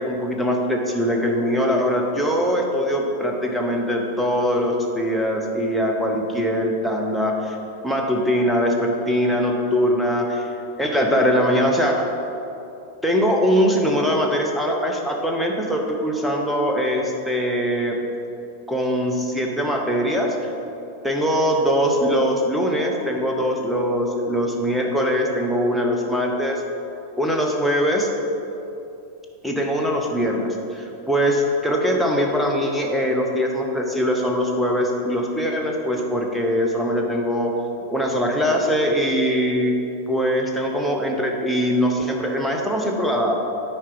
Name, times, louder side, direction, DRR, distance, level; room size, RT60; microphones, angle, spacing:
voice 1, 0.0-7.6 7.8-10.5 10.8-12.1 13.0-18.0 18.7-20.5 21.0-26.6 27.2-28.1 29.4-37.5 37.9-39.8 40.1-43.5, equal, ahead, 0 dB, 1.0 m, -22 dB
9.6 x 4.7 x 4.8 m, 2.8 s
figure-of-eight pair, 90°, 0 cm